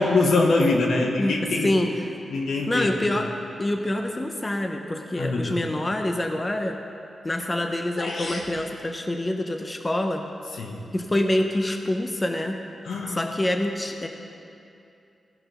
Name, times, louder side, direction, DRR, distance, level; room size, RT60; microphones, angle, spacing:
voice 1, 0.0-1.8 2.3-2.9 5.2-5.6 10.5-10.9 12.8-13.2, left 3 dB, 85° left, 1 dB, 1.3 m, -23 dB
voice 2, 1.2-1.9 2.7-3.3 3.6-6.8 7.2-10.2 10.9-12.6 13.1-14.1, left 1 dB, 20° left, 4 dB, 0.6 m, -26 dB
sound 1, 8.0-8.6, left 2 dB, 55° left, 1.3 m, -33 dB
16.0 x 6.1 x 5.3 m, 2.6 s
wide cardioid pair, 115°, 0 cm